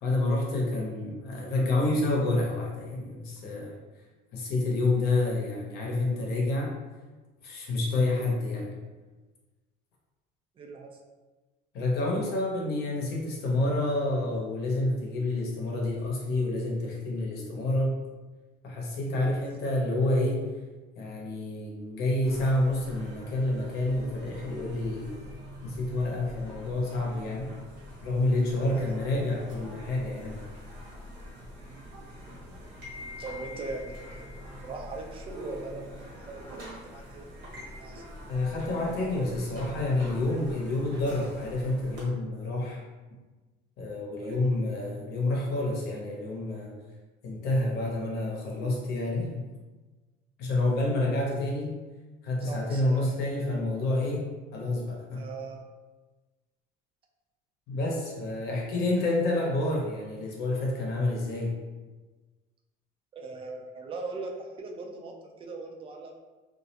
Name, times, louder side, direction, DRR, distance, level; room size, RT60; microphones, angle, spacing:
voice 1, 0.0-3.7 4.3-6.7 7.4-8.7 11.7-18.0 18.6-20.5 20.9-25.1 25.6-27.5 28.0-30.4 38.3-42.8 43.8-46.7 47.2-49.5 50.4-51.8 52.2-55.2 57.7-61.5, left 2 dB, 65° left, -2 dB, 0.7 m, -28 dB
voice 2, 10.6-10.9 19.1-19.3 28.7-28.9 31.6-31.8 33.2-34.3 34.6-38.0 44.1-44.6 52.4-53.3 55.1-55.6 63.1-66.2, right 3 dB, 30° right, 1 dB, 0.4 m, -40 dB
sound 1, 22.2-42.0, equal, 75° right, 1.2 m, -44 dB
2.4 x 2.0 x 2.8 m, 1.2 s
cardioid pair, 125°, 18 cm